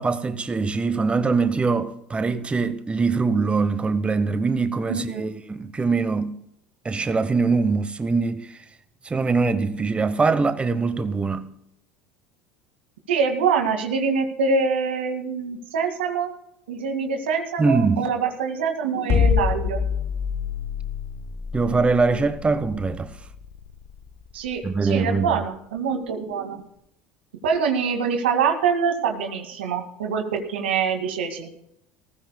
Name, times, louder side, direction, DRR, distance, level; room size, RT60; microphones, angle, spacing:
voice 1, 0.0-6.4 6.8-8.6 9.0-11.5 17.6-18.0 21.5-23.1 24.6-25.4, right 4 dB, 20° right, 1.0 m, -23 dB
voice 2, 4.9-5.3 13.1-16.3 16.7-19.8 24.3-26.6 27.4-31.5, right 5 dB, 85° right, 2.1 m, -25 dB
sound 1, 19.1-25.3, left 6 dB, 45° left, 0.9 m, -26 dB
19.0 x 15.0 x 2.3 m
hypercardioid pair, 80°, 6 cm